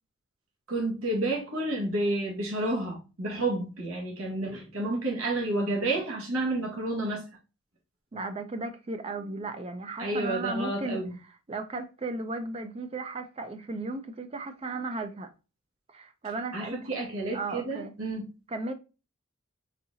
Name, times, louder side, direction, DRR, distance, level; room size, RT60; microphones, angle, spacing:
voice 1, 0.7-7.2 10.0-11.1 16.5-18.3, right 2 dB, 85° right, 1.5 m, -30 dB
voice 2, 8.1-15.3 15.9-16.9 17.3-17.9 18.5-18.7, right 2 dB, 30° right, 0.4 m, -35 dB
4.1 x 3.7 x 2.7 m
head